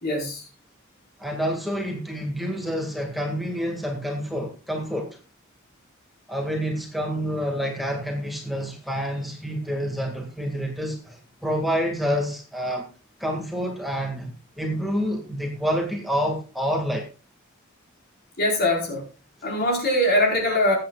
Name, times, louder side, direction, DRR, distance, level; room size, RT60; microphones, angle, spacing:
voice 1, 0.0-0.4 18.4-19.1 19.4-20.8, left 1 dB, 50° left, 4.6 m, -22 dB
voice 2, 1.2-5.2 6.3-12.9 13.2-14.3 14.6-17.1, equal, ahead, 1.9 m, -28 dB
21.0 x 8.7 x 2.4 m
head